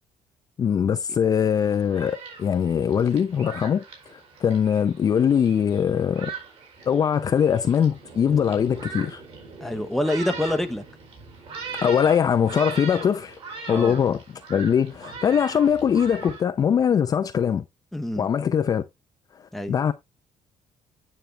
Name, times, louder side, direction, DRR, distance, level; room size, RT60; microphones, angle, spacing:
voice 1, 0.6-3.8 4.1-6.3 6.9-9.2 11.8-13.4 13.7-14.2 14.5-17.6 18.2-18.8 19.7-19.9, left 8 dB, 30° left, 0.5 m, -22 dB
Thunderstorm, 1.6-16.4, right 4 dB, 50° right, 4.5 m, -40 dB
voice 2, 9.6-10.8 13.7-14.0 17.9-18.3 19.5-19.8, left 1 dB, ahead, 0.8 m, -26 dB
9.2 x 6.4 x 3.2 m
cardioid pair, 165°, 12 cm